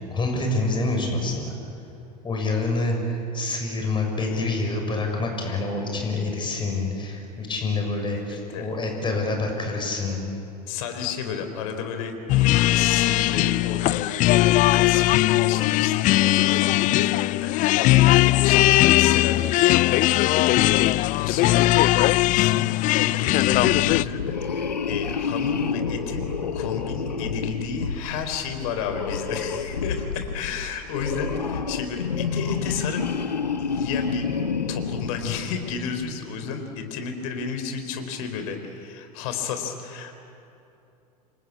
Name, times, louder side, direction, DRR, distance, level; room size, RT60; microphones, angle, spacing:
voice 1, 0.1-1.5 2.2-10.2, left 2 dB, 20° left, 2 dB, 6.4 m, -27 dB
voice 2, 8.1-8.7 10.7-14.4 14.7-18.0 18.4-20.0 20.3-20.8 21.2-22.7 23.0-26.3 26.5-33.0 33.6-34.3 34.7-40.2, left 6 dB, 55° left, 6 dB, 3.9 m, -32 dB
sound 1, 12.3-24.0, left 17 dB, 40° left, 0.5 m, -19 dB
sound 2, 23.4-35.9, left 5 dB, 80° left, 1.2 m, -29 dB
28.0 x 23.5 x 8.7 m, 2.8 s
figure-of-eight pair, 80°, 21 cm